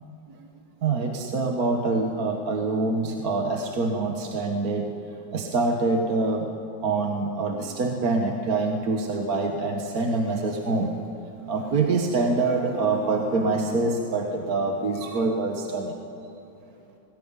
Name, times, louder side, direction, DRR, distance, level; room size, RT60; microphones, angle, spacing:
voice 1, 0.8-4.9 5.3-6.5 6.8-10.9 11.5-16.0, right 3 dB, 50° right, 3 dB, 1.8 m, -25 dB
19.5 x 19.0 x 9.8 m, 2.9 s
omnidirectional pair, 2.1 m